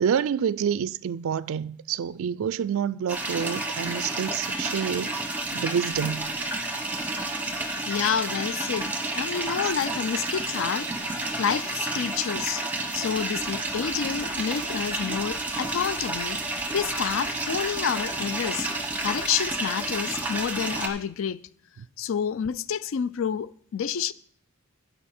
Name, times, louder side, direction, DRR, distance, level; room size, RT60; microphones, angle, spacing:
voice 1, 0.0-6.3, right 7 dB, 70° right, 0.3 m, -28 dB
sound 1, 3.1-20.9, right 2 dB, 5° right, 0.9 m, -30 dB
voice 2, 7.9-12.6 12.9-16.4 16.7-18.7 19.0-21.4 22.0-24.1, left 7 dB, 65° left, 0.4 m, -29 dB
sound 2, 13.1-21.0, right 1 dB, 45° left, 4.0 m, -53 dB
13.5 x 5.6 x 4.3 m
head